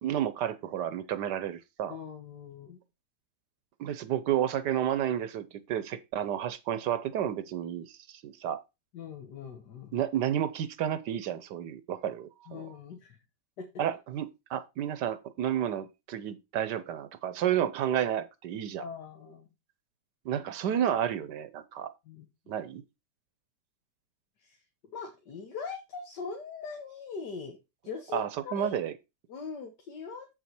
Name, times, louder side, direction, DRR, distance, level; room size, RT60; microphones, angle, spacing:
voice 1, 0.0-1.9 3.8-8.6 9.9-12.7 13.8-18.8 20.2-21.9 22.5-22.8 28.1-28.9, right 10 dB, 90° right, 1.5 m, -31 dB
voice 2, 1.9-2.8 8.9-10.0 12.5-13.2 13.6-13.7 18.8-19.5 22.1-22.3 24.4-24.6 24.9-27.6 27.8-28.8 29.3-30.3, left 5 dB, 85° left, 1.9 m, -41 dB
7.5 x 6.3 x 4.4 m
omnidirectional pair, 1.8 m